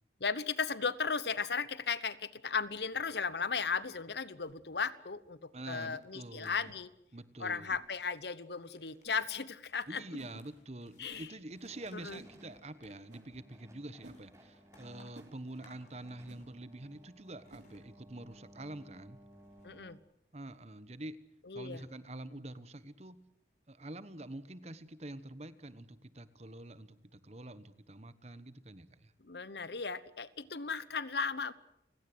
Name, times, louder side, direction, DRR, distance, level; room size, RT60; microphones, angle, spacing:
voice 1, 0.2-6.9 7.4-10.0 11.0-11.3 11.9-12.2 19.6-20.0 21.5-21.8 29.2-31.5, left 5 dB, 75° left, 17 dB, 1.1 m, -36 dB
sound 1, 2.5-2.7 3.6-3.8 4.4-4.6 5.5-5.7 6.6-6.8 7.7-7.9 9.0-9.2 10.2-10.4 11.1-11.3 12.1-12.3 13.1-13.3 14.0-14.2 15.1-15.3 16.3-16.4 17.5-17.7, right 1 dB, 80° right, 3.4 m, -56 dB
voice 2, 5.5-6.7 7.1-7.8 9.9-19.2 20.3-21.2 21.5-23.2 23.7-29.1, right 1 dB, 40° right, 14 dB, 1.2 m, -46 dB
sound 2, 5.9-6.6 7.8-16.9 17.1-19.8, left 3 dB, 45° left, 7.2 m, -67 dB
sound 3, 11.6-19.9, equal, 15° right, 4.2 m, -59 dB
30.0 x 17.0 x 7.9 m, 0.76 s
head